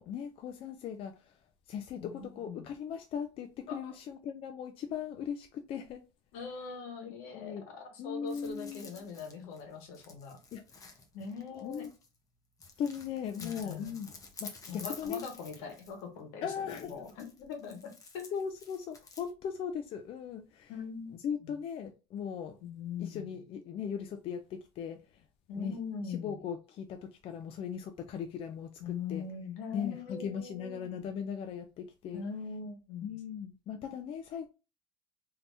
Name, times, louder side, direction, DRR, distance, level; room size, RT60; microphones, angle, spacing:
voice 1, 0.0-1.4 1.7-6.0 7.3-7.6 8.0-9.1 10.5-10.6 11.5-11.9 12.8-14.1 14.4-15.2 16.4-17.0 18.3-20.7 21.2-22.6 23.0-25.2 25.6-25.8 26.0-29.2 29.7-32.2 33.0-34.5, left 7 dB, 45° left, 0.4 m, -38 dB
voice 2, 2.0-2.7 3.7-3.9 6.3-10.4 11.1-11.9 13.4-14.0 14.7-18.2 20.7-21.1 21.4-21.5 22.6-23.4 25.5-26.4 28.8-30.9 32.1-33.2, left 5 dB, 75° left, 1.2 m, -42 dB
sound 1, 8.3-12.2 12.6-16.1 16.6-19.3, left 4 dB, 25° left, 0.9 m, -51 dB
3.4 x 2.8 x 2.6 m
supercardioid pair, 100°, 13 cm